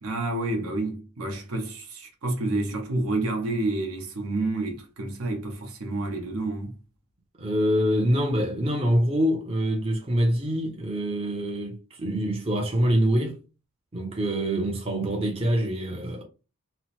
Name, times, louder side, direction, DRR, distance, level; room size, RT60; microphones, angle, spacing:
voice 1, 0.0-6.7, right 2 dB, 65° right, 0.8 m, -29 dB
voice 2, 7.4-13.4 13.9-16.2, equal, 25° right, 0.6 m, -25 dB
2.9 x 2.0 x 2.9 m
head